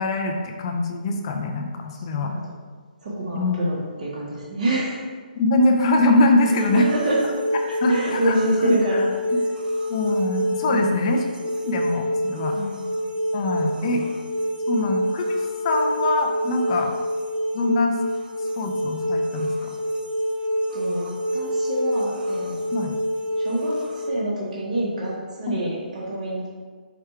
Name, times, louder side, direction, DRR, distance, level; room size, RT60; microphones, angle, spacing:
voice 1, 0.0-2.3 3.3-3.6 5.4-6.9 7.8-8.4 8.6-8.7 9.9-11.2 11.6-12.5 13.3-14.0 14.7-15.4 15.6-16.9 17.5-18.0 18.6-19.7 22.7-23.0 25.5-25.6, left 2 dB, 35° left, 3 dB, 0.4 m, -23 dB
voice 2, 1.9-2.4 3.0-5.0 6.7-7.2 7.6-9.1 10.7-11.0 12.5-12.9 13.5-14.0 20.7-22.9 23.4-26.5, right 1 dB, 50° right, -5 dB, 0.9 m, -27 dB
sound 1, 6.4-24.1, equal, 75° right, 0.6 m, -27 dB
4.8 x 2.3 x 4.3 m, 1.5 s
hypercardioid pair, 150°, 5 cm